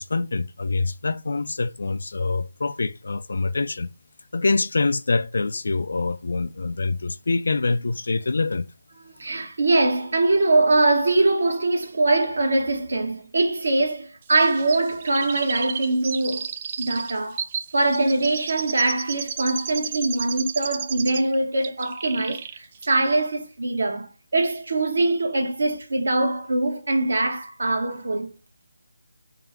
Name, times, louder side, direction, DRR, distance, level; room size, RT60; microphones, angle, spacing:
voice 1, 0.0-3.9 4.3-8.6, left 3 dB, 60° left, 0.4 m, -25 dB
voice 2, 9.1-16.5 16.8-17.4 17.7-28.3, right 2 dB, 65° right, 1.3 m, -22 dB
Chirp tweet, 14.3-21.4 21.6-22.6 22.8-22.9, right 7 dB, 30° right, 0.4 m, -33 dB
3.6 x 3.2 x 4.4 m
figure-of-eight pair, 160°, 0 cm